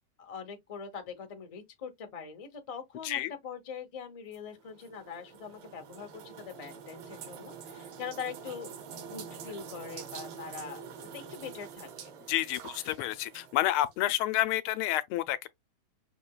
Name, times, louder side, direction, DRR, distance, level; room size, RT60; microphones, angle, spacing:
voice 1, 0.2-8.7 9.1-12.1, left 6 dB, 70° left, 0.3 m, -43 dB
sound 1, 4.3-13.9, right 7 dB, 85° right, 1.7 m, -46 dB
voice 2, 12.3-15.5, left 14 dB, 90° left, 1.5 m, -29 dB
5.9 x 2.8 x 2.3 m
omnidirectional pair, 2.3 m